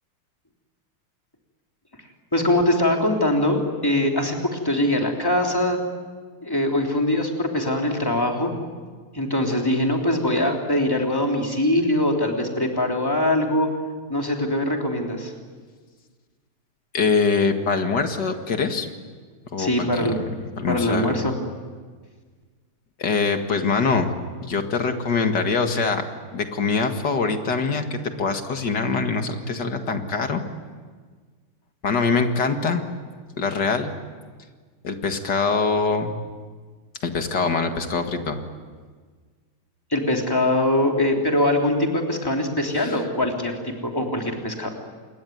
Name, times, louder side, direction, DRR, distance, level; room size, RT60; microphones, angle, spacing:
voice 1, 2.3-5.8 6.4-8.6 9.1-13.7 14.1-15.3 19.6-20.1 20.7-21.3 39.9-44.7, left 1 dB, 10° left, 1 dB, 3.3 m, -22 dB
voice 2, 16.9-18.9 19.5-19.7 20.0-20.1 20.6-21.2 23.0-24.1 24.5-26.0 26.3-30.4 31.8-32.8 33.4-33.9 34.8-36.1 37.0-38.4 42.8-43.0, left 4 dB, 55° left, 6 dB, 2.4 m, -23 dB
28.0 x 21.5 x 9.4 m, 1.5 s
omnidirectional pair, 2.3 m